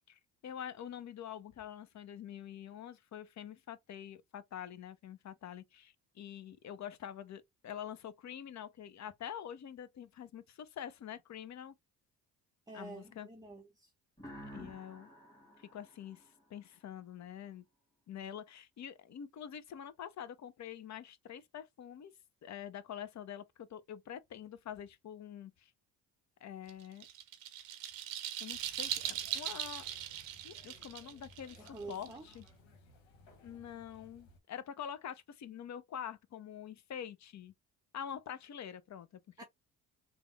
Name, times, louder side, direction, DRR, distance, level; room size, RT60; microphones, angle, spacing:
voice 1, 0.1-11.7 12.7-13.3 14.5-15.1 15.6-17.7 18.1-22.1 22.4-25.7 26.4-27.1 28.4-29.9 30.4-32.5 33.4-37.5 37.9-39.4, left 9 dB, 35° left, 0.6 m, -46 dB
voice 2, 12.7-13.9 31.6-32.3 39.4-39.5, right 3 dB, 10° right, 0.7 m, -48 dB
sound 1, 14.2-16.9, equal, 5° left, 1.6 m, -52 dB
sound 2, 26.7-32.5, right 12 dB, 75° right, 0.7 m, -40 dB
sound 3, 28.5-34.4, left 1 dB, 70° left, 1.3 m, -60 dB
3.4 x 2.2 x 3.3 m
hypercardioid pair, 50°, 46 cm